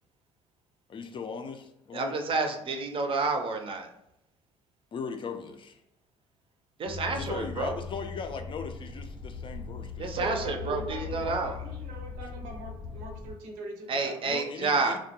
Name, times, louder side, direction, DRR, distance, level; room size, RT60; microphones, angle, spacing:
voice 1, 0.9-2.1 4.9-5.8 7.1-10.2 14.3-15.0, left 5 dB, 40° left, 6 dB, 0.4 m, -38 dB
voice 2, 1.9-3.9 6.8-7.8 10.0-11.6 13.9-15.0, right 3 dB, 40° right, 5 dB, 0.5 m, -29 dB
sound 1, 6.8-13.3, left 6 dB, 90° left, 0.9 m, -40 dB
voice 3, 10.2-14.2, right 2 dB, 80° right, 2 dB, 0.6 m, -40 dB
2.3 x 2.1 x 2.8 m, 0.81 s
supercardioid pair, 75°, 13 cm